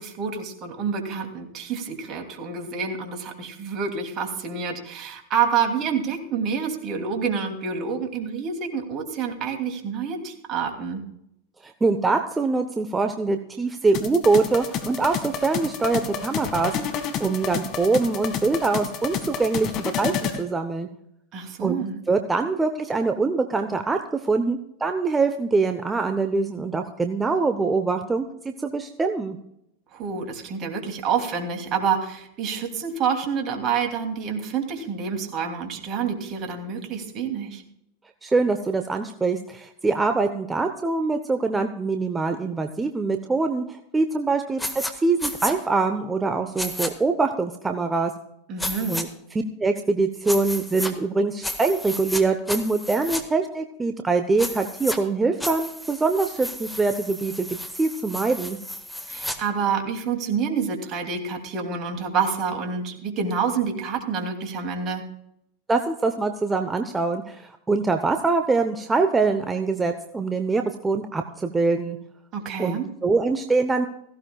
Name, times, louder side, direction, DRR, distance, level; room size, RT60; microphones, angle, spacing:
voice 1, 0.0-11.0 21.3-21.9 29.9-37.6 48.5-48.9 59.1-65.0 72.3-72.9, right 6 dB, 40° right, 4 dB, 2.8 m, -28 dB
voice 2, 11.6-20.9 21.6-21.8 22.1-29.4 38.2-48.1 48.9-49.1 49.6-57.5 57.8-58.6 65.7-72.0 72.6-73.9, right 3 dB, 15° right, 6 dB, 0.9 m, -24 dB
sound 1, 13.9-20.4, left 7 dB, 45° left, 1.9 m, -30 dB
sound 2, 44.6-44.9 45.2-45.5 46.6-46.9 48.6-49.0 50.3-50.9 51.4-52.2 52.5-53.2 54.4-55.0 55.4-59.4, left 1 dB, 5° left, 1.7 m, -32 dB
17.0 x 15.5 x 2.4 m, 0.76 s
hypercardioid pair, 90°, 0 cm